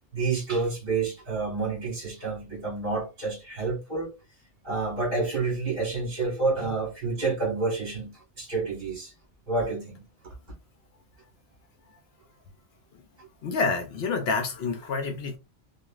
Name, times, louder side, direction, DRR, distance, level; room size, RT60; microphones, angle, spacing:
voice 1, 0.1-4.1 4.6-9.1 9.5-10.0 10.2-10.3, right 3 dB, 40° right, 1.6 m, -29 dB
voice 2, 13.4-15.4, left 4 dB, 65° left, 0.7 m, -28 dB
3.0 x 2.3 x 2.3 m
omnidirectional pair, 1.3 m